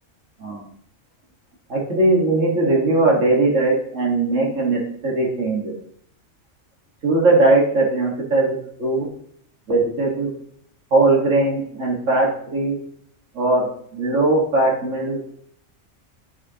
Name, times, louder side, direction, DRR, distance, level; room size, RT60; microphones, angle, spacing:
voice 1, 1.7-5.7 7.0-9.1 9.7-10.3 10.9-12.8 13.3-15.2, right 2 dB, 85° right, -2 dB, 2.1 m, -19 dB
9.5 x 5.0 x 2.9 m, 0.67 s
omnidirectional pair, 1.3 m